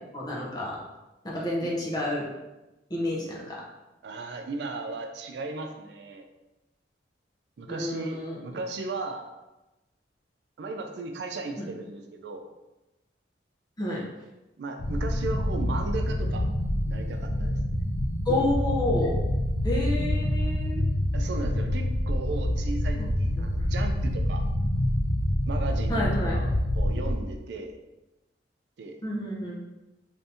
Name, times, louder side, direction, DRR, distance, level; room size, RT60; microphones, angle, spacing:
voice 1, 0.1-0.8 1.2-2.3 2.9-3.6 7.7-8.4 11.6-11.7 13.8-14.0 18.3-19.2 19.6-20.8 23.4-23.5 25.9-26.4 29.0-29.6, left 1 dB, 25° left, -3 dB, 0.7 m, -29 dB
voice 2, 4.0-6.2 7.6-9.3 10.6-12.5 14.6-16.4 16.9-17.6 21.1-24.4 25.5-27.7 28.8-29.0, right 3 dB, 70° right, 4 dB, 0.4 m, -36 dB
sound 1, 14.8-27.1, left 1 dB, 85° left, 0.5 m, -27 dB
2.7 x 2.6 x 3.4 m, 1.0 s
head